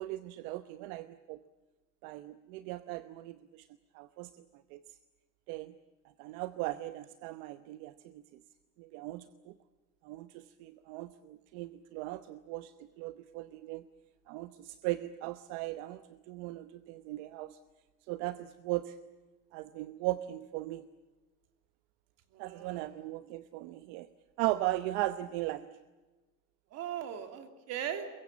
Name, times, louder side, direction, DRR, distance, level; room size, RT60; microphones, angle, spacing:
voice 1, 0.0-1.4 2.0-3.7 3.9-4.3 4.7-4.8 5.5-5.7 6.2-8.2 8.8-9.5 10.0-13.8 14.3-17.6 18.1-19.0 19.5-20.9 22.4-24.1 24.4-25.7, right 17 dB, 70° right, 12 dB, 1.0 m, -38 dB
voice 2, 22.3-23.0 26.7-28.1, right 9 dB, 45° right, 8 dB, 3.1 m, -39 dB
24.0 x 22.5 x 8.6 m, 1.2 s
cardioid pair, 170°, 36 cm